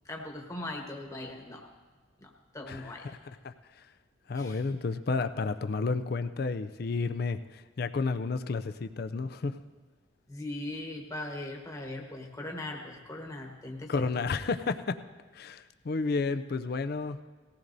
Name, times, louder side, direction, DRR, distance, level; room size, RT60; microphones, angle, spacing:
voice 1, 0.0-1.6 2.2-3.2 4.3-4.6 10.3-14.3, left 1 dB, 15° left, 1 dB, 1.2 m, -40 dB
voice 2, 2.7-3.2 3.4-3.5 4.3-9.6 13.9-15.0 15.3-17.2, left 4 dB, 50° left, 10 dB, 0.4 m, -31 dB
19.0 x 15.5 x 2.7 m, 1.3 s
head